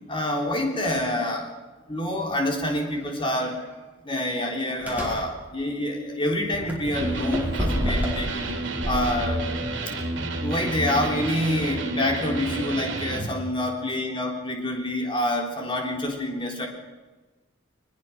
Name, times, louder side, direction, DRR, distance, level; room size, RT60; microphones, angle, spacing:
voice 1, 0.1-1.5 1.9-3.6 4.0-8.6 8.8-9.5 10.4-16.7, left 1 dB, 25° left, 1 dB, 3.6 m, -27 dB
sound 1, 2.8-3.0 3.5-3.6 4.8-5.2 6.5-8.3 8.8-9.8, equal, 10° right, 4.9 m, -30 dB
Electric guitar, 6.9-13.3, right 2 dB, 65° right, 2.9 m, -30 dB
22.0 x 21.0 x 6.0 m, 1.2 s
head